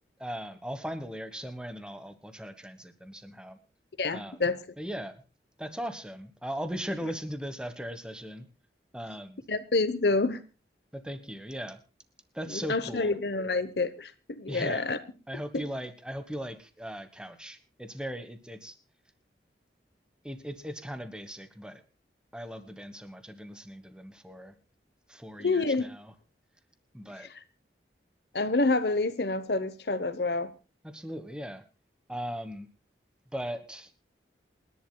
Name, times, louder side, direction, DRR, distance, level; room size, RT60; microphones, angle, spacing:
voice 1, 0.2-3.6 4.1-4.4 4.8-5.2 5.6-8.5 8.9-9.5 10.9-11.8 12.3-13.1 14.5-14.9 15.3-18.8 20.2-21.8 22.3-24.5 25.1-26.1 26.9-27.3 30.8-31.6 32.1-32.7 33.3-33.9, equal, 5° right, 10 dB, 1.3 m, -38 dB
voice 2, 4.0-4.6 9.5-10.4 12.5-15.0 15.5-15.6 25.4-25.8 28.3-30.5, left 3 dB, 70° left, 12 dB, 1.0 m, -28 dB
28.0 x 11.0 x 2.3 m, 0.32 s
head